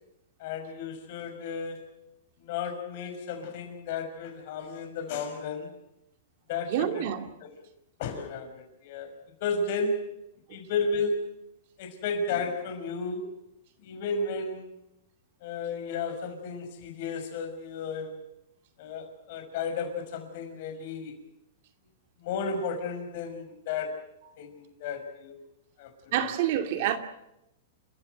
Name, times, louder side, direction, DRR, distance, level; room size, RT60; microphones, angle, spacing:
voice 1, 0.4-1.9 2.4-5.7 6.5-7.1 7.4-7.5 8.0-9.1 9.4-10.0 10.5-11.3 11.8-13.3 13.8-14.7 15.4-18.2 18.8-21.1 22.2-24.0 24.4-25.4 25.8-26.3, left 4 dB, 50° left, 5.8 m, -33 dB
voice 2, 6.7-7.3 26.1-27.0, right 10 dB, 50° right, 2.4 m, -27 dB
30.0 x 14.5 x 8.0 m
supercardioid pair, 155°, 0 cm